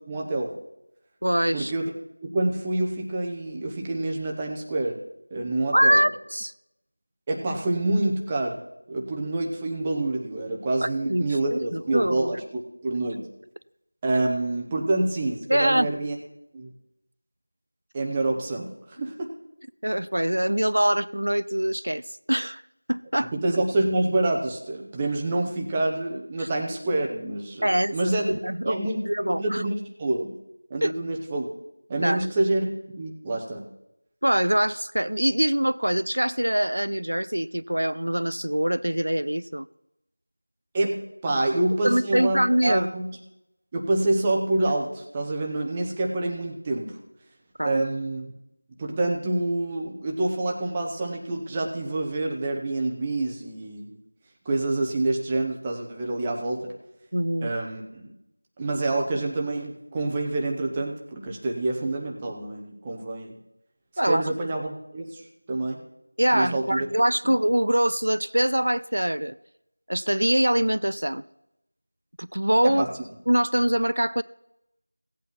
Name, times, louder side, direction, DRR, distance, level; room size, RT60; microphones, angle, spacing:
voice 1, 0.1-0.5 1.5-1.9 2.2-5.0 5.3-6.0 7.3-8.6 8.9-12.4 12.8-13.3 14.0-16.2 16.5-16.7 17.9-19.3 23.3-28.3 28.6-29.0 29.4-30.3 30.7-31.5 31.9-32.7 33.0-33.7 40.7-43.0 43.7-46.9 47.6-48.3 48.8-54.0 54.4-56.6 57.4-58.1 58.6-63.4 64.0-65.2 65.5-65.8 66.3-66.9 72.6-72.9, right 2 dB, 10° right, 0 dB, 0.8 m, -27 dB
voice 2, 1.2-1.7 5.7-6.5 10.8-12.3 15.5-15.9 19.8-22.6 22.9-23.3 26.4-26.5 27.6-29.6 30.8-30.9 32.0-32.3 34.2-39.7 41.3-41.4 41.8-42.9 47.6-47.8 57.1-57.5 64.0-64.3 66.2-69.4 69.9-71.2 72.2-72.8 73.3-74.2, right 1 dB, 75° right, 16 dB, 0.4 m, -24 dB
16.5 x 8.3 x 5.7 m, 0.87 s
figure-of-eight pair, 175°, 0 cm